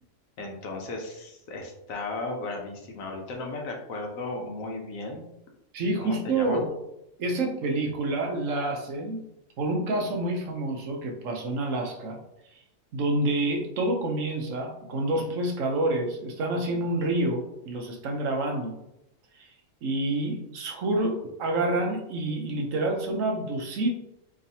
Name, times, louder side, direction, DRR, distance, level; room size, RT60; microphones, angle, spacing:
voice 1, 0.4-5.2 6.0-6.6, left 2 dB, 85° left, 1 dB, 1.3 m, -35 dB
voice 2, 5.7-6.7 7.2-9.2 9.6-12.2 12.9-18.7 19.3-19.5 19.8-23.9, right 2 dB, 75° right, 2 dB, 1.2 m, -28 dB
4.0 x 3.7 x 2.8 m, 0.83 s
omnidirectional pair, 1.4 m